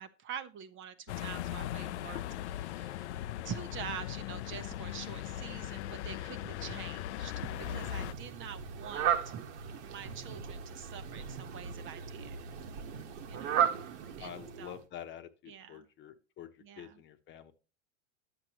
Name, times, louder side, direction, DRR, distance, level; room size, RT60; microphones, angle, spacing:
voice 1, 0.0-3.1 3.4-9.4 9.8-12.4 13.3-13.7 14.2-14.3 14.6-14.8 15.5-15.8 16.6-17.0, right 8 dB, 35° right, 11 dB, 0.9 m, -45 dB
sound 1, 1.1-8.1, left 12 dB, 75° left, 0.6 m, -39 dB
Fowl, 7.5-14.8, right 8 dB, 70° right, 1.4 m, -36 dB
voice 2, 14.2-17.5, left 9 dB, 35° left, 8 dB, 1.0 m, -47 dB
11.0 x 7.8 x 3.0 m, 0.33 s
supercardioid pair, 120°, 35 cm